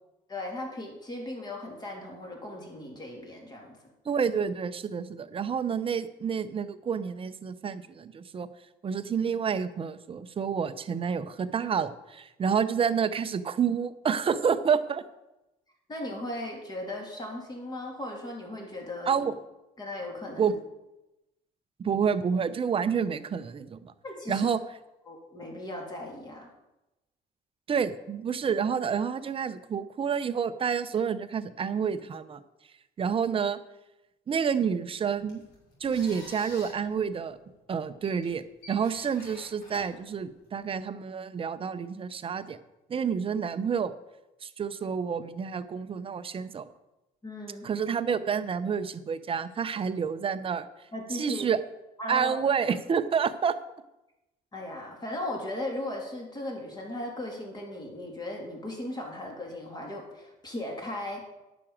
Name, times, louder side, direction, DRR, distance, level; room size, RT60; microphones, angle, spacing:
voice 1, 0.3-3.8 15.9-19.2 19.8-20.5 24.0-24.5 25.1-26.5 47.2-47.7 50.9-51.5 52.0-52.4 54.5-61.3, left 1 dB, 25° left, 0 dB, 3.1 m, -37 dB
voice 2, 4.1-8.5 8.8-15.0 19.1-19.3 20.4-20.6 21.8-23.9 24.3-24.6 27.7-32.4 33.0-33.6 34.3-35.4 35.8-37.4 37.7-42.6 42.9-43.9 44.4-46.7 47.6-50.7 51.1-51.6 52.1-53.6, right 6 dB, 35° right, 12 dB, 0.7 m, -29 dB
sound 1, 35.1-40.7, left 1 dB, 90° left, 4.0 m, -50 dB
9.8 x 6.1 x 7.3 m, 0.97 s
cardioid pair, 110°, 17 cm